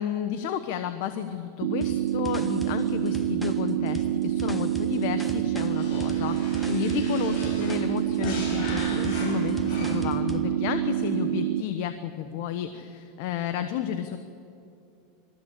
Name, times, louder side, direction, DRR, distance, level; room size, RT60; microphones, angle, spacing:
voice 1, 0.0-14.2, left 10 dB, 60° left, 9 dB, 1.0 m, -32 dB
sound 1, 1.6-11.6, right 12 dB, 70° right, 0.4 m, -27 dB
sound 2, 1.8-10.5, right 1 dB, ahead, 1.2 m, -41 dB
sound 3, 5.7-10.2, left 2 dB, 40° left, 7.1 m, -38 dB
21.0 x 15.0 x 8.4 m, 2.6 s
supercardioid pair, 135°, 0 cm